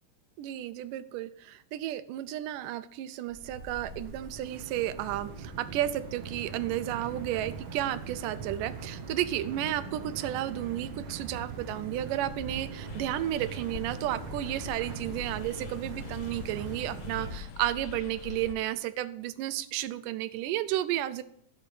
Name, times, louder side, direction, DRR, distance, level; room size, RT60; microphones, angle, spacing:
voice 1, 0.4-21.2, right 13 dB, 85° right, 14 dB, 2.2 m, -32 dB
sound 1, 3.3-17.4, right 4 dB, 60° right, 1.4 m, -41 dB
sound 2, 12.9-18.5, left 8 dB, 80° left, 1.5 m, -44 dB
12.5 x 5.3 x 4.6 m, 0.67 s
omnidirectional pair, 3.7 m